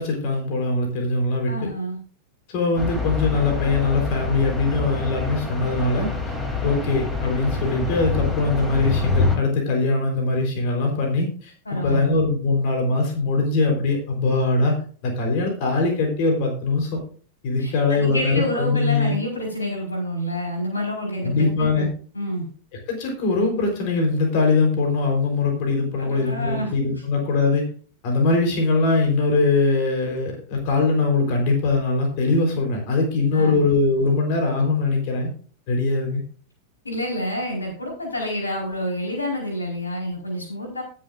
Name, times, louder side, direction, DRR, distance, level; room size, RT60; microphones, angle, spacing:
voice 1, 0.0-1.5 2.5-6.1 6.6-11.5 11.8-17.0 17.4-19.2 21.2-21.9 22.9-27.7 28.0-35.3 35.7-36.2, left 3 dB, 45° left, 1 dB, 4.1 m, -22 dB
voice 2, 1.5-2.0 11.6-12.1 17.6-21.9 22.1-22.5 26.0-26.7 33.3-33.6 36.8-40.8, left 1 dB, 80° left, -1 dB, 4.7 m, -28 dB
sound 1, 2.8-9.4, left 4 dB, 15° left, 3.1 m, -26 dB
19.0 x 7.6 x 2.6 m, 0.42 s
figure-of-eight pair, 90°, 0 cm